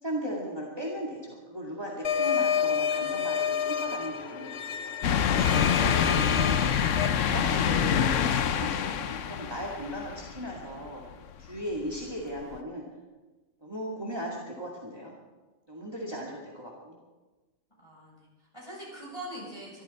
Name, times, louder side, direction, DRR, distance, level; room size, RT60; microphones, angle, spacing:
voice 1, 0.0-4.5 5.4-6.7 7.2-8.0 8.3-11.0 11.4-12.8 13.6-15.1 15.7-16.9, equal, 20° right, -3 dB, 2.3 m, -37 dB
sound 1, 2.0-7.1, left 7 dB, 60° left, 1.1 m, -30 dB
sound 2, 5.0-10.6 11.1-11.2 12.5-12.6, left 8 dB, 90° left, 1.1 m, -26 dB
voice 2, 17.8-19.8, right 1 dB, 20° left, -5 dB, 7.4 m, -43 dB
24.0 x 13.0 x 4.3 m, 1.2 s
omnidirectional pair, 1.3 m